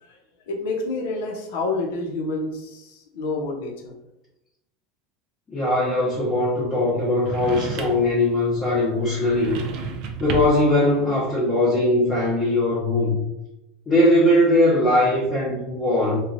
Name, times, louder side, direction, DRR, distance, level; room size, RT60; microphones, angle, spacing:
voice 1, 0.5-3.9, left 2 dB, 75° left, 1 dB, 0.7 m, -28 dB
voice 2, 5.5-9.6 10.2-13.2 13.9-16.2, left 1 dB, 20° left, -8 dB, 0.8 m, -20 dB
sound 1, 7.2-8.2 9.3-10.7, right 5 dB, 55° right, 0.4 m, -31 dB
3.0 x 2.3 x 2.5 m, 0.89 s
supercardioid pair, 140°, 0 cm